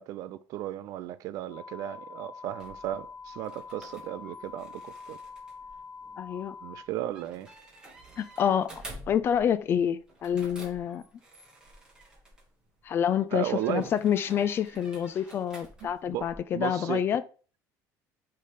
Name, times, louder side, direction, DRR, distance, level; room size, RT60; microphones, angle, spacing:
voice 1, 0.0-5.2 6.6-7.5 13.3-13.9 15.8-16.3 16.5-17.0, right 12 dB, 55° right, 0.5 m, -35 dB
sound 1, 1.5-6.8, left 5 dB, 15° left, 2.0 m, -45 dB
sound 2, 2.4-12.9 13.6-16.4, right 1 dB, 10° right, 1.6 m, -50 dB
voice 2, 6.2-6.6 8.2-11.0 12.8-17.2, left 9 dB, 35° left, 0.4 m, -28 dB
5.6 x 3.3 x 5.1 m
cardioid pair, 150°, 7 cm